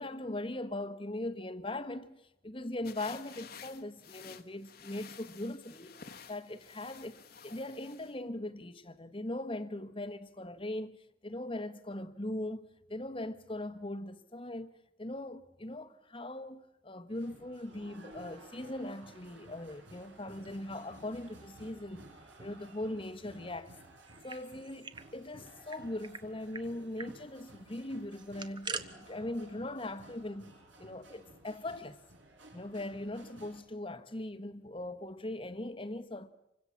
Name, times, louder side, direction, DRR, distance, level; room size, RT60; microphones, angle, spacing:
voice 1, 0.0-5.9 6.3-11.0 11.2-22.1 22.4-23.7 24.2-30.5 30.8-32.0 32.5-36.3, left 1 dB, 25° left, 1.2 m, -40 dB
sound 1, 2.8-8.1, left 6 dB, 50° left, 1.4 m, -52 dB
sound 2, 17.1-33.6, right 1 dB, 80° right, 4.9 m, -55 dB
sound 3, 24.0-25.1 25.3-25.4 25.7-26.2 26.5-26.7 27.0-27.2 28.1-28.8, right 5 dB, 25° right, 1.0 m, -42 dB
27.0 x 25.0 x 7.3 m
head